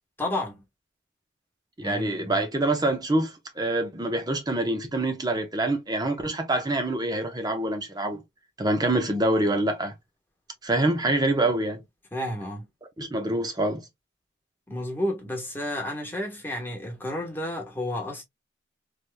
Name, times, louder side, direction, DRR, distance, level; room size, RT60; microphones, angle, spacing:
voice 1, 0.2-0.6 1.8-2.5 12.1-12.7 14.7-18.2, left 1 dB, 10° left, 1.2 m, -31 dB
voice 2, 1.8-8.2 8.6-9.9 10.6-11.8 13.0-13.8, right 2 dB, 20° right, 0.8 m, -25 dB
3.3 x 2.9 x 2.2 m
head